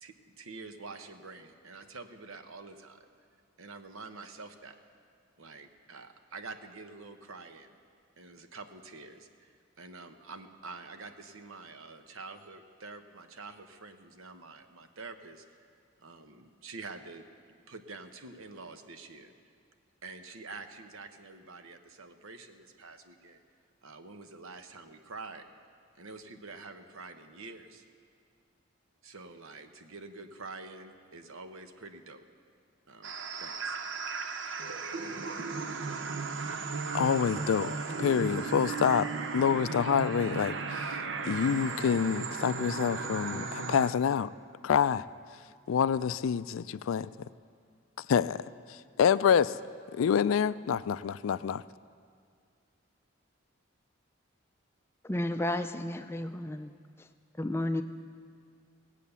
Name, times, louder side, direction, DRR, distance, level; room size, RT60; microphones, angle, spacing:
voice 1, 0.0-3.1 3.6-4.7 5.4-7.8 8.2-15.7 16.0-17.3 17.7-19.3 20.0-23.4 23.8-25.5 25.9-27.8 29.0-32.2 32.9-33.1 33.4-33.8, right 3 dB, 85° right, 8 dB, 0.9 m, -47 dB
sound 1, 33.0-43.9, right 4 dB, 65° right, 0.7 m, -35 dB
voice 2, 36.9-37.7 38.0-39.1 39.3-41.0 41.2-44.3 44.6-45.1 45.7-47.1 48.1-49.6 49.9-51.6, left 7 dB, 80° left, 17 dB, 0.3 m, -27 dB
voice 3, 55.0-56.7 57.0-57.1 57.4-57.8, left 1 dB, 10° left, 8 dB, 0.4 m, -32 dB
17.5 x 8.3 x 6.9 m, 2.2 s
head